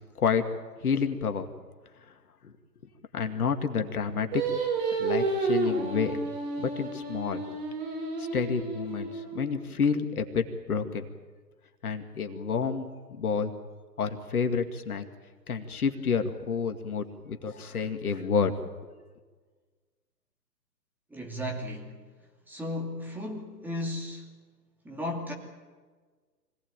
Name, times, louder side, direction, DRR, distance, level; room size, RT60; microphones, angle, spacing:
voice 1, 0.8-1.5 2.4-2.5 3.1-4.4 5.0-6.2 6.6-7.4 8.2-11.1 11.8-13.5 14.0-15.0 15.5-18.5, left 6 dB, 60° left, 7 dB, 2.4 m, -29 dB
Singing, 4.3-9.6, right 3 dB, 35° right, 6.2 m, -31 dB
voice 2, 21.1-21.9 22.5-24.3 24.8-25.3, left 1 dB, 5° right, -1 dB, 2.7 m, -35 dB
25.5 x 18.0 x 9.1 m, 1.4 s
figure-of-eight pair, 140°, 50 cm